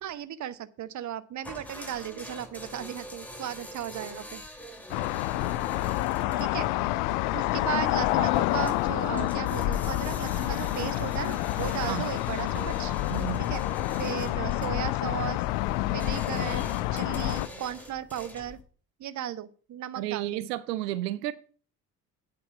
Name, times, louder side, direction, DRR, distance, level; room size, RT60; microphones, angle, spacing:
voice 1, 0.0-4.4 6.4-6.7 7.3-12.9 13.4-13.6 14.0-15.4 15.9-18.6 19.0-20.5, right 10 dB, 35° right, 0.8 m, -36 dB
sound 1, 1.4-18.6, left 1 dB, 5° left, 2.6 m, -44 dB
sound 2, 4.9-17.5, left 16 dB, 65° left, 0.6 m, -28 dB
voice 2, 13.1-13.4 20.0-21.3, right 15 dB, 80° right, 0.7 m, -32 dB
8.7 x 5.6 x 7.0 m
hypercardioid pair, 55°, 48 cm